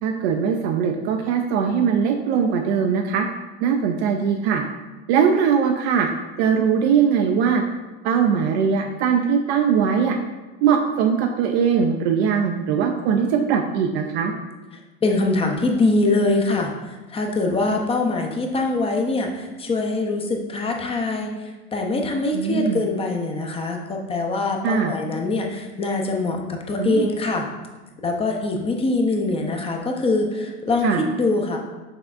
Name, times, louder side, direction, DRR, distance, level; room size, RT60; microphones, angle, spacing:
voice 1, 0.0-3.3 3.6-4.6 5.1-6.1 6.4-7.6 8.0-10.2 10.6-14.3 22.3-22.8 24.6-24.9 26.8-27.1 30.8-31.0, right 7 dB, 70° right, 3 dB, 0.5 m, -20 dB
voice 2, 15.0-27.5 28.0-31.6, left 2 dB, 20° left, 2 dB, 0.6 m, -23 dB
6.2 x 3.4 x 2.5 m, 1.2 s
supercardioid pair, 115°, 32 cm